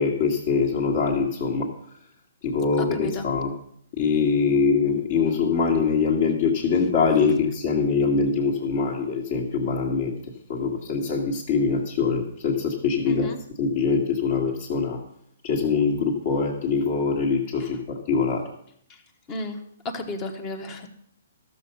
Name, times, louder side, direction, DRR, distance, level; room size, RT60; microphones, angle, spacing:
voice 1, 0.0-1.7 2.4-3.5 4.0-10.1 10.5-13.3 13.6-15.0 15.4-18.4, left 5 dB, 40° left, -2 dB, 1.7 m, -23 dB
voice 2, 2.8-3.3 13.1-13.4 19.3-19.6 19.9-20.9, left 1 dB, 20° left, 7 dB, 1.1 m, -33 dB
13.0 x 6.9 x 5.4 m, 0.66 s
hypercardioid pair, 160°, 0 cm